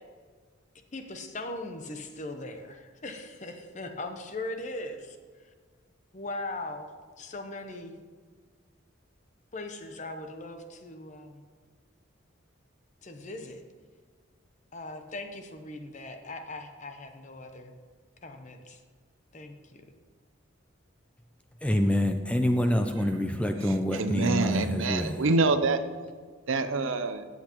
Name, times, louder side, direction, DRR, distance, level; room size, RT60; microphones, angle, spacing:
voice 1, 0.9-5.2 6.1-6.9 7.2-7.9 9.5-11.4 13.0-13.6 14.7-17.7 18.2-18.8 19.3-19.8, left 2 dB, 35° left, 6 dB, 0.8 m, -39 dB
voice 2, 21.6-25.2, left 1 dB, 5° left, 6 dB, 0.4 m, -26 dB
voice 3, 23.9-25.8 26.5-27.3, right 3 dB, 75° right, 10 dB, 0.6 m, -26 dB
13.5 x 8.4 x 3.0 m, 1.5 s
head